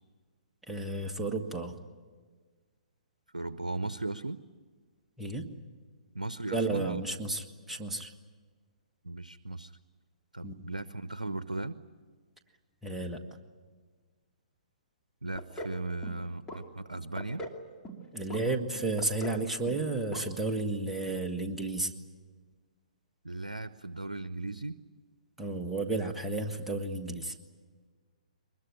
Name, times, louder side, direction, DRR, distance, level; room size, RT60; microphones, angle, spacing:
voice 1, 0.7-1.7 5.2-5.5 6.5-8.1 10.4-10.5 12.8-13.2 18.1-21.9 25.4-27.3, right 2 dB, 5° right, 2 dB, 1.7 m, -32 dB
voice 2, 3.3-4.4 6.1-7.0 9.0-9.7 10.3-11.8 15.2-17.4 23.2-24.8, right 2 dB, 85° right, 14 dB, 0.7 m, -37 dB
sound 1, 15.3-15.8 16.0-16.6 16.9-17.6 17.8-18.4 18.7-19.4 19.7-19.9 20.1-20.2 20.6-20.7, equal, 15° left, 2.6 m, -41 dB
23.0 x 21.0 x 9.9 m, 1.5 s
figure-of-eight pair, 125°, 4 cm